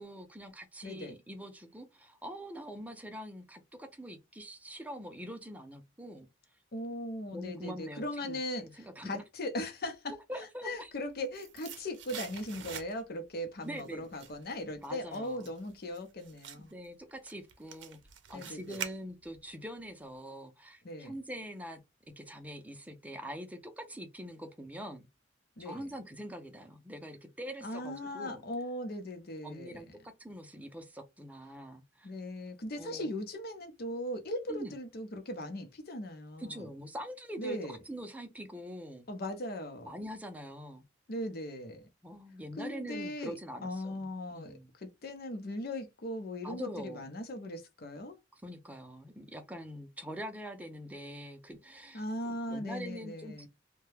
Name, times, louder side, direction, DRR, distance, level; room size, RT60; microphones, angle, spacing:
voice 1, 0.0-6.3 7.3-9.2 10.3-10.9 13.6-14.1 14.8-15.5 16.6-18.0 18.3-21.8 22.2-25.1 25.6-28.4 29.4-29.9 30.2-32.1 32.8-33.1 34.5-34.7 36.4-39.1 39.8-40.8 42.0-44.7 46.4-47.1 48.3-52.0 52.5-53.5, equal, 10° right, 0.6 m, -44 dB
voice 2, 0.8-1.2 6.7-16.7 18.3-18.8 20.8-21.2 25.6-25.9 27.6-29.8 32.0-36.7 37.4-37.8 39.1-39.9 41.1-41.8 42.6-48.2 51.9-53.5, left 1 dB, 55° left, 0.7 m, -39 dB
sound 1, 10.9-13.3 13.6-19.5 19.8-19.9, right 8 dB, 75° right, 0.6 m, -46 dB
2.7 x 2.2 x 3.2 m
head